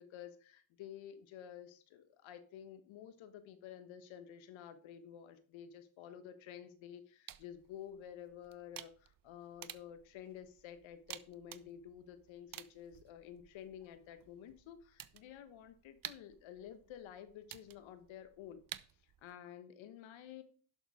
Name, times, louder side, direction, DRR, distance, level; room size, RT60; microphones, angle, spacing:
voice 1, 0.0-18.6 19.0-20.4, left 9 dB, 75° left, 11 dB, 1.3 m, -51 dB
sound 1, 7.3-19.3, right 11 dB, 45° right, 0.8 m, -54 dB
11.0 x 6.5 x 4.8 m, 0.40 s
hypercardioid pair, 50°, 47 cm